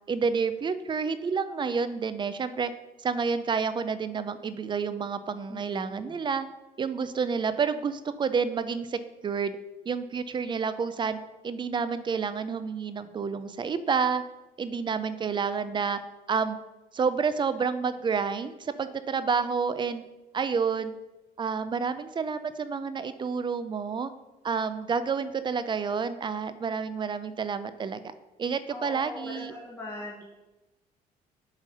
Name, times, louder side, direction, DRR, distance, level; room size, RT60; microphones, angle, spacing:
voice 1, 0.1-2.7 3.0-6.5 6.8-9.6 9.9-11.2 11.4-14.2 14.6-16.0 16.3-16.6 16.9-20.0 20.3-20.9 21.4-24.1 24.4-28.0 28.4-29.5, right 5 dB, 30° right, 12 dB, 0.4 m, -29 dB
voice 2, 5.5-6.2 28.7-30.3, left 2 dB, 15° left, -5 dB, 1.2 m, -40 dB
7.5 x 3.2 x 5.2 m, 1.1 s
cardioid pair, 110°, 17 cm